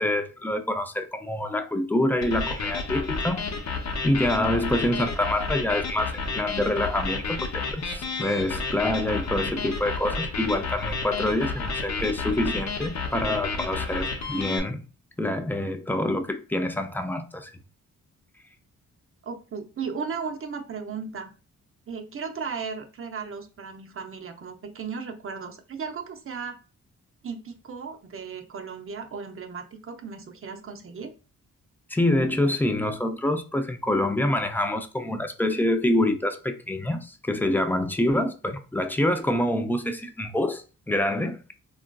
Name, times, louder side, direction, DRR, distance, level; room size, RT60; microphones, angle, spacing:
voice 1, 0.0-3.4 4.0-14.8 15.2-17.5 31.9-41.5, left 1 dB, 5° left, 0.4 m, -26 dB
sound 1, 2.2-14.6, left 4 dB, 60° left, 0.7 m, -31 dB
voice 2, 19.2-21.3 21.9-26.6 27.2-31.1, right 5 dB, 40° right, 0.6 m, -36 dB
3.6 x 2.4 x 2.2 m
cardioid pair, 80°, 33 cm